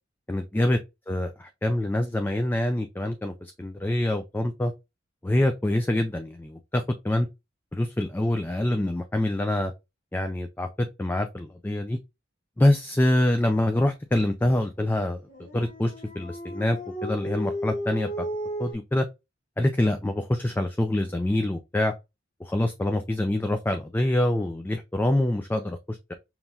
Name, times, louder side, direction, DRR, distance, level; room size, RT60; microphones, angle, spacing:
voice 1, 0.3-0.8 1.1-4.7 5.2-7.3 7.7-9.7 10.1-12.0 12.6-15.2 15.5-18.3 18.6-19.1 19.6-21.9 22.4-26.1, left 1 dB, 10° left, 0.3 m, -25 dB
Dog, 15.3-18.7, equal, 45° left, 1.6 m, -34 dB
5.4 x 3.0 x 2.3 m
head